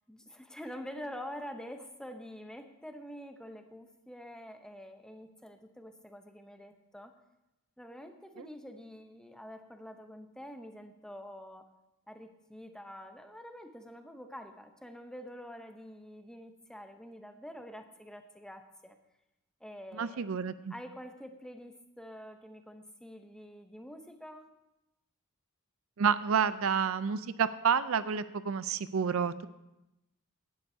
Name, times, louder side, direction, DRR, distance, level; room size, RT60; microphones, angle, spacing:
voice 1, 0.1-7.1 7.8-11.7 12.1-19.0 19.6-20.3 20.7-24.5, equal, 5° left, 6 dB, 0.7 m, -47 dB
voice 2, 19.9-20.7 26.0-29.5, right 7 dB, 65° right, 14 dB, 0.4 m, -29 dB
17.0 x 11.5 x 2.7 m, 0.93 s
head